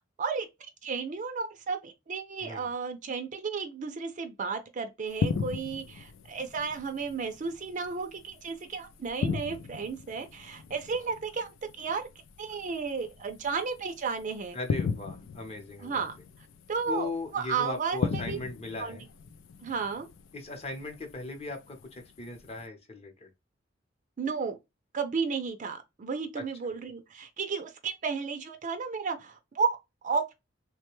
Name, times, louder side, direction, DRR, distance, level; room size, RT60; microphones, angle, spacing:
voice 1, 0.8-11.5 11.8-12.1 12.4-14.6 15.8-16.1 16.7-18.4 18.8-19.0 19.6-20.1 24.2-24.6 24.9-29.8 30.0-30.3, right 5 dB, 40° right, 0.4 m, -33 dB
sound 1, 5.1-22.7, left 5 dB, 85° left, 0.4 m, -38 dB
voice 2, 14.5-16.0 16.9-19.0 20.3-23.3 26.4-26.5, left 3 dB, 30° left, 0.8 m, -38 dB
3.2 x 2.2 x 3.0 m
head